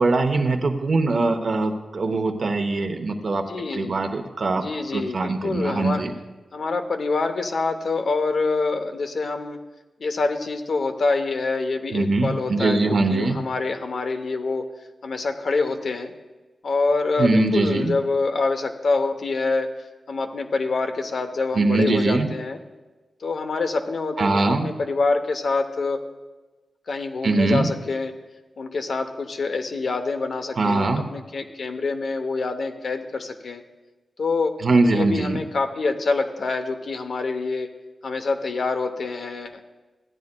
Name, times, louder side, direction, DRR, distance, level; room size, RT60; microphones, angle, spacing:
voice 1, 0.0-3.4 3.7-4.6 4.9-6.1 11.9-13.4 17.2-18.0 21.5-22.3 24.2-24.7 27.2-27.7 30.6-31.1 34.6-35.4, right 3 dB, 55° right, 5 dB, 0.8 m, -22 dB
voice 2, 3.5-4.0 4.5-6.0 6.5-9.6 10.0-14.7 15.0-16.1 16.6-19.7 20.1-22.6 23.2-26.0 26.9-28.1 28.6-33.6 34.2-34.6 34.9-37.7 38.0-39.6, left 3 dB, 65° left, 6 dB, 0.7 m, -26 dB
14.5 x 9.5 x 2.2 m, 1.2 s
wide cardioid pair, 100°, 0 cm